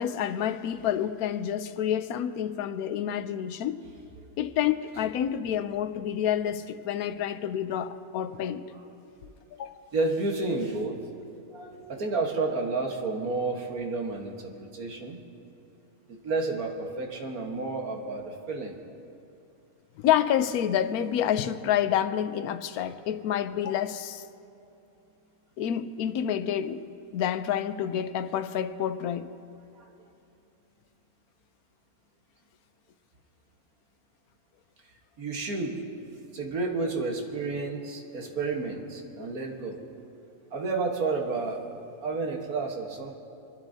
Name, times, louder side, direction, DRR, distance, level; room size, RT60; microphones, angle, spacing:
voice 1, 0.0-3.8 4.4-8.6 9.5-9.7 20.0-24.2 25.6-26.8 27.1-29.3, left 10 dB, 85° left, 1.1 m, -28 dB
voice 2, 8.4-8.7 9.9-11.0 11.5-15.2 16.1-18.8 22.7-22.9 29.8-29.9 35.2-35.8 36.3-39.8 40.5-41.6 42.0-43.1, right 3 dB, 80° right, 1.8 m, -31 dB
26.5 x 12.0 x 2.7 m
omnidirectional pair, 1.5 m